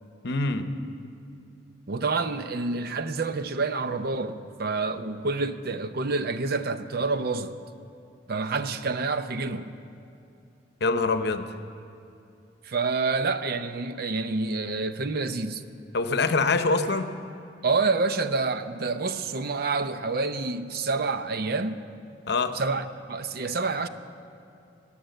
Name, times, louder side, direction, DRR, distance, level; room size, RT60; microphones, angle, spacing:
voice 1, 0.2-0.7 10.8-11.5 15.9-17.1 22.3-22.6, left 3 dB, 65° left, 0.8 m, -24 dB
voice 2, 1.9-7.5 8.3-9.7 12.6-15.6 17.6-21.8 22.5-23.9, right 3 dB, 55° right, 0.6 m, -28 dB
15.5 x 10.0 x 8.0 m
head